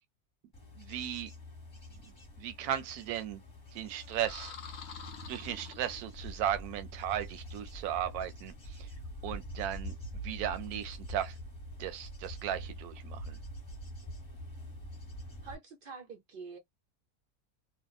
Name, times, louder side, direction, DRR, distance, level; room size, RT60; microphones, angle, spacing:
Bird / Insect / Wind, 0.5-15.5, equal, 20° left, 0.9 m, -45 dB
voice 1, 0.8-1.3 2.4-3.4 3.7-4.5 5.3-8.9 9.2-11.3 11.8-13.4, right 10 dB, 85° right, 1.1 m, -36 dB
sound 1, 4.0-6.3, left 6 dB, 55° left, 0.6 m, -48 dB
voice 2, 15.4-16.6, right 5 dB, 65° right, 0.5 m, -46 dB
2.8 x 2.0 x 2.3 m
omnidirectional pair, 1.5 m